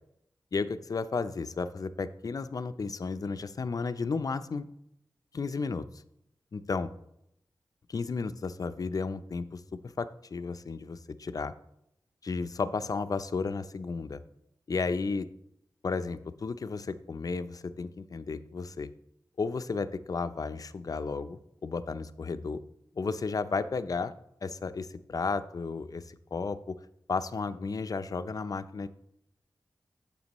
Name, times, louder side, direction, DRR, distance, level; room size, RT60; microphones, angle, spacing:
voice 1, 0.5-4.7 5.3-5.9 6.5-6.9 7.9-11.5 12.2-14.2 14.7-15.3 15.8-18.9 19.4-22.6 23.0-24.1 24.4-26.8 27.1-28.9, left 4 dB, 55° left, 12 dB, 0.5 m, -33 dB
9.5 x 6.7 x 3.0 m, 0.78 s
wide cardioid pair, 70°, 8 cm